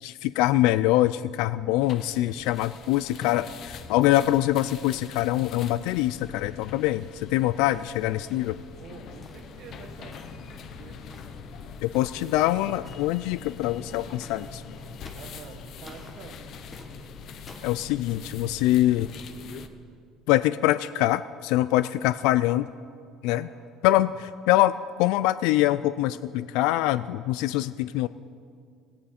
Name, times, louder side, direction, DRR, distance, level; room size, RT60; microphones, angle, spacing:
voice 1, 0.0-8.6 11.8-14.6 17.6-19.1 20.3-22.7 23.2-23.5 23.8-28.1, left 15 dB, 75° left, 15 dB, 0.3 m, -24 dB
sound 1, 1.8-19.7, left 5 dB, 40° left, 0.8 m, -43 dB
voice 2, 8.8-11.2 12.1-12.5 15.1-16.4 23.3-23.7, right 6 dB, 45° right, 3 dB, 1.5 m, -47 dB
sound 2, 9.2-9.5 10.1-10.5 11.1-11.4 11.9-12.2 12.8-13.1 14.2-14.5 15.0-15.3 15.9-16.2 16.7-16.9 17.5-17.7, left 2 dB, 15° left, 1.2 m, -49 dB
17.5 x 17.0 x 4.3 m, 2.3 s
cardioid pair, 170°, 0 cm